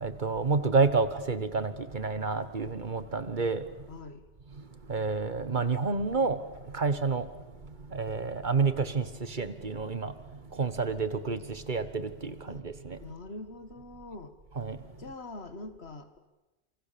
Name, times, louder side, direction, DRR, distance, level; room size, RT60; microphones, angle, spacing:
voice 1, 0.0-3.6 4.9-6.4 6.7-7.3 7.9-10.1 10.6-13.0 14.6-14.8, right 4 dB, 50° right, 11 dB, 1.4 m, -29 dB
voice 2, 3.9-4.3 12.5-12.6 13.0-14.3 15.0-16.2, left 2 dB, 80° left, 9 dB, 2.0 m, -43 dB
28.0 x 24.5 x 6.9 m, 1.1 s
omnidirectional pair, 1.1 m